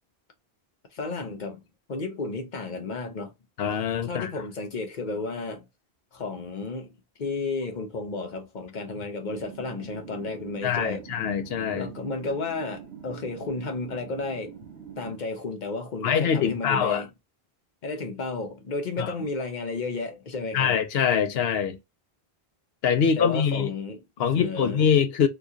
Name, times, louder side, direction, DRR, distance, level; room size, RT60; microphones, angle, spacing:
voice 1, 0.9-1.6 1.9-3.3 4.1-5.6 6.1-6.9 7.2-11.1 11.7-14.5 15.0-17.1 17.8-20.8 23.0-24.8, left 3 dB, 50° left, 0.9 m, -33 dB
voice 2, 3.6-4.3 10.6-11.9 16.0-17.0 19.0-19.1 20.5-21.8 22.8-23.7 24.2-25.3, left 7 dB, 80° left, 0.8 m, -24 dB
sound 1, 9.3-15.2, right 8 dB, 90° right, 1.1 m, -44 dB
2.9 x 2.4 x 3.6 m
omnidirectional pair, 1.0 m